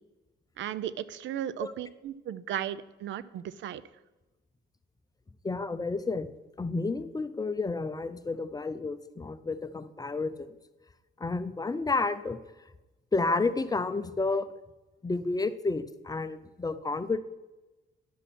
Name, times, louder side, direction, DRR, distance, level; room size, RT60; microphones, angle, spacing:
voice 1, 0.6-3.8, right 10 dB, 70° right, 17 dB, 0.5 m, -35 dB
voice 2, 5.4-6.3 6.6-10.6 11.2-12.4 13.1-14.5 15.0-17.2, left 3 dB, 20° left, 12 dB, 0.6 m, -30 dB
11.0 x 7.1 x 4.2 m, 1.1 s
cardioid pair, 90°, 20 cm